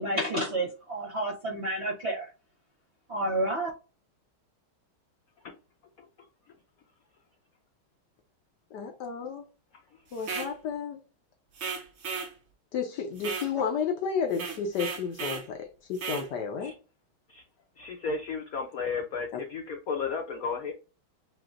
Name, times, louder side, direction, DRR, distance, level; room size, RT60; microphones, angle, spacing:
voice 1, 0.0-2.3 3.1-3.7, right 1 dB, 55° right, 0.8 m, -30 dB
voice 2, 8.7-9.4 10.1-11.0 12.7-16.7, left 6 dB, 70° left, 1.1 m, -32 dB
sound 1, 10.2-10.5 11.6-12.3 13.2-13.5 14.3-15.5 16.0-16.3, right 5 dB, 85° right, 0.6 m, -35 dB
voice 3, 17.8-20.7, left 5 dB, 85° left, 0.7 m, -33 dB
7.6 x 2.6 x 2.4 m
omnidirectional pair, 2.3 m